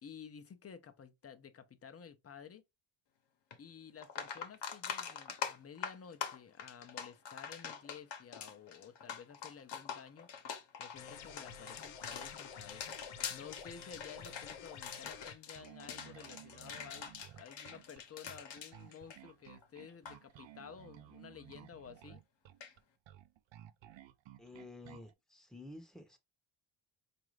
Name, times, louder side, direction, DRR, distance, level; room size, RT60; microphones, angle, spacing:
voice 1, 0.0-2.6 3.6-10.3 10.8-22.2, left 7 dB, 30° left, 0.6 m, -53 dB
sound 1, 3.5-3.6 4.0-19.6 19.9-20.2 22.6-22.7, left 7 dB, 60° left, 1.0 m, -44 dB
sound 2, 11.0-15.4, left 6 dB, 85° left, 0.9 m, -50 dB
Bass guitar, 15.6-25.1, right 12 dB, 70° right, 0.5 m, -56 dB
voice 2, 24.4-26.2, left 2 dB, ahead, 0.8 m, -51 dB
4.6 x 2.5 x 3.1 m
cardioid pair, 110°, 47 cm